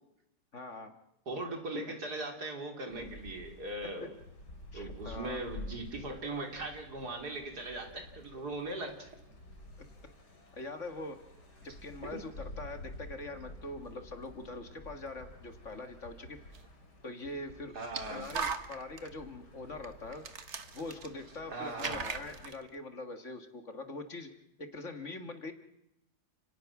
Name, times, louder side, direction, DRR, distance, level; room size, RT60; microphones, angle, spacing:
voice 1, 0.5-0.9 1.7-2.0 4.0-4.1 4.7-5.4 10.3-11.2 11.8-16.4 17.0-17.7 18.1-20.2 20.7-24.3 24.6-25.5, left 2 dB, 50° left, 7 dB, 2.1 m, -43 dB
voice 2, 1.3-4.1 4.7-9.1 12.1-12.2 17.7-18.3 21.5-22.0, right 2 dB, 75° right, 3 dB, 4.0 m, -39 dB
sound 1, 2.9-22.5, left 1 dB, 80° left, 4.1 m, -51 dB
sound 2, 16.5-16.6 17.8-19.1 19.8-19.9 20.1-21.4 21.7-22.6, right 5 dB, 45° right, 1.4 m, -38 dB
30.0 x 18.5 x 6.0 m, 0.84 s
omnidirectional pair, 1.7 m